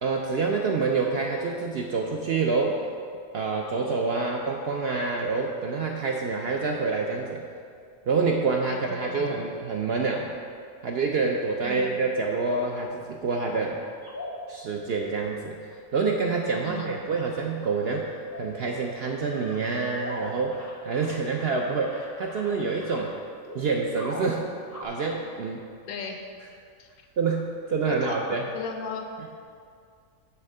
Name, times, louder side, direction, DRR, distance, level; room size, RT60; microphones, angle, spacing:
voice 1, 0.0-2.8 3.3-7.4 8.1-10.3 10.8-13.8 14.5-23.1 23.5-24.5 24.8-25.6 27.2-28.4, right 4 dB, 65° right, 0 dB, 0.6 m, -27 dB
voice 2, 8.7-9.3 11.6-12.0 16.6-17.0 25.9-26.2 26.8-27.1 27.9-29.1, left 4 dB, 80° left, 4 dB, 1.2 m, -36 dB
sound 1, 14.0-14.6 15.6-15.7 16.2-16.9 17.4-17.5 17.8-18.0 18.3-18.9 19.3-24.9, left 1 dB, 20° left, 0.5 m, -41 dB
7.6 x 3.6 x 6.5 m, 2.3 s
omnidirectional pair, 1.5 m